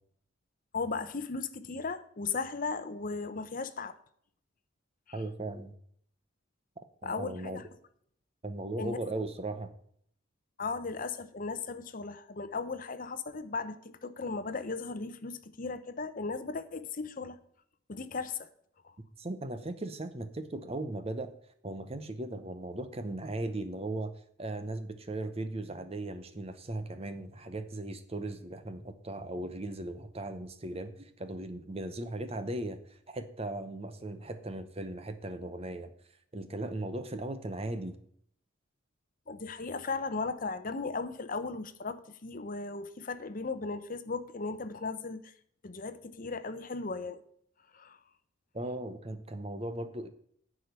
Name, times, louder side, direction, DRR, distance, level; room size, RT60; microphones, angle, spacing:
voice 1, 0.7-4.0 7.0-7.6 8.8-9.0 10.6-17.4 17.9-18.5 18.8-18.9 39.3-45.3 45.6-47.2 47.7-48.0, left 4 dB, 45° left, 12 dB, 0.8 m, -36 dB
voice 2, 5.1-5.7 7.0-7.6 8.4-9.7 19.2-21.3 21.6-24.1 24.4-35.9 36.3-38.0 48.5-50.1, right 2 dB, 30° right, 9 dB, 0.8 m, -37 dB
10.0 x 5.1 x 8.1 m, 0.65 s
head